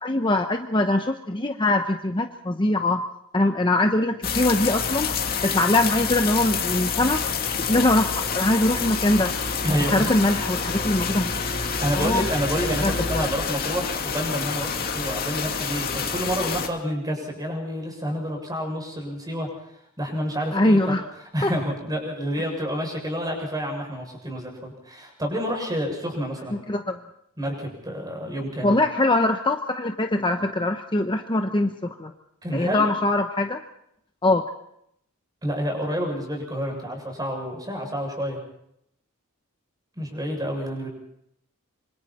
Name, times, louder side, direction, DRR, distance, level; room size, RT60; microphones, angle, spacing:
voice 1, 0.0-3.0 3.3-5.1 5.4-7.2 7.7-9.3 9.8-11.4 11.9-12.3 12.8-13.2 20.5-21.0 21.4-21.5 26.7-27.0 28.6-32.1 32.5-33.6 34.2-34.4, left 2 dB, 20° left, 5 dB, 0.9 m, -22 dB
sound 1, 4.2-16.7, left 5 dB, 45° left, 2.3 m, -27 dB
voice 2, 9.6-10.2 11.8-19.5 20.0-20.9 21.3-26.6 27.4-28.8 32.4-32.8 35.4-38.4 40.0-40.9, equal, 20° right, 1 dB, 7.1 m, -29 dB
26.5 x 25.5 x 4.3 m, 0.74 s
head